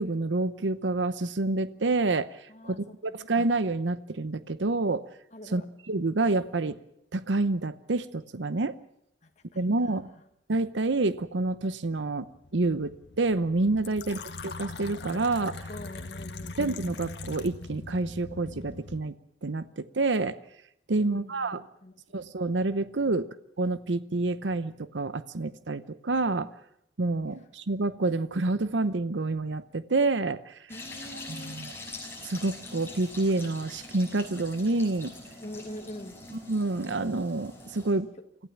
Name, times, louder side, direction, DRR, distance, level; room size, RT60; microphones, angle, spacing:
voice 1, 0.0-2.3 2.6-5.0 5.5-5.6 5.9-6.8 7.1-8.7 9.6-10.1 10.5-15.6 16.6-19.1 19.4-20.4 20.9-21.6 22.1-23.3 23.6-26.5 27.0-30.6 31.3-31.7 32.2-35.1 36.5-38.1, right 2 dB, 90° right, 14 dB, 0.8 m, -28 dB
voice 2, 2.5-2.8 3.1-3.2 5.3-5.6 9.2-10.0 15.7-16.6 21.0-22.2 30.7-31.6 35.4-36.2, left 1 dB, 40° left, 4 dB, 1.7 m, -44 dB
sound 1, 12.3-19.0, left 2 dB, 90° left, 1.2 m, -43 dB
Fill (with liquid), 13.8-17.7, left 6 dB, 65° left, 1.9 m, -44 dB
sound 2, 30.7-37.9, left 2 dB, 15° left, 5.7 m, -44 dB
25.0 x 15.5 x 7.2 m, 0.74 s
head